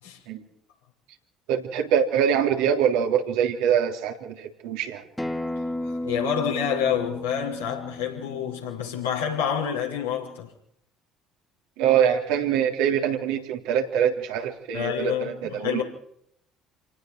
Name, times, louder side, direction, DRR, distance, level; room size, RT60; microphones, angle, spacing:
voice 1, 1.5-5.0 11.8-15.8, right 8 dB, 65° right, 3.4 m, -24 dB
Acoustic guitar, 5.2-10.4, left 1 dB, 5° left, 2.4 m, -35 dB
voice 2, 5.4-10.5 14.7-15.8, left 8 dB, 75° left, 6.1 m, -28 dB
29.0 x 18.5 x 4.8 m
figure-of-eight pair, 55°, 0 cm